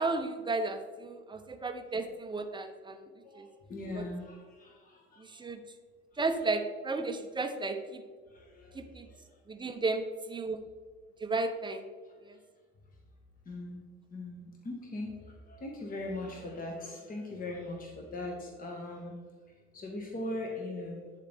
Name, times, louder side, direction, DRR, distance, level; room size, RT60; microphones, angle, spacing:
voice 1, 0.0-3.1 3.3-3.5 4.0-4.1 5.2-5.6 6.2-8.0 8.7-9.1 9.5-10.6 11.2-11.8 12.2-12.4, right 3 dB, 15° right, 7 dB, 0.6 m, -33 dB
voice 2, 3.2-5.5 8.3-9.4 12.0-12.4 13.4-19.2 19.5-21.1, left 2 dB, 30° left, 0 dB, 1.2 m, -41 dB
9.0 x 4.1 x 3.4 m, 1.5 s
supercardioid pair, 85°, 31 cm